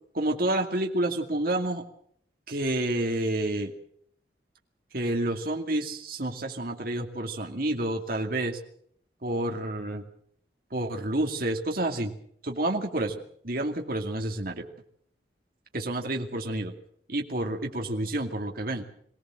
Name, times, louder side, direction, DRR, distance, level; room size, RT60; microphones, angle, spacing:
voice 1, 0.1-1.8 2.5-3.7 4.9-8.6 9.2-10.0 10.7-12.1 12.4-14.7 15.7-16.7 17.1-18.8, right 1 dB, 55° right, 3 dB, 2.4 m, -29 dB
23.5 x 17.5 x 7.6 m, 0.66 s
head